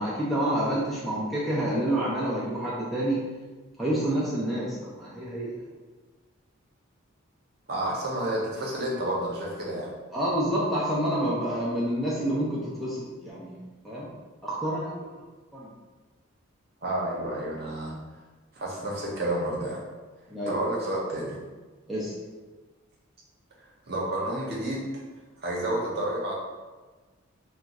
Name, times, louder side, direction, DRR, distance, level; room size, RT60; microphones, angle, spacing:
voice 1, 0.0-3.2 3.8-5.5 10.1-13.6 13.8-14.1 14.4-15.1 15.5-15.7 20.3-20.6 21.9-22.1, right 1 dB, ahead, -7 dB, 0.4 m, -28 dB
voice 2, 7.7-9.9 16.8-17.9 18.5-19.8 20.5-21.4 23.9-24.9 25.4-26.3, right 1 dB, 50° right, -4 dB, 0.7 m, -30 dB
2.4 x 2.3 x 4.0 m, 1.3 s
head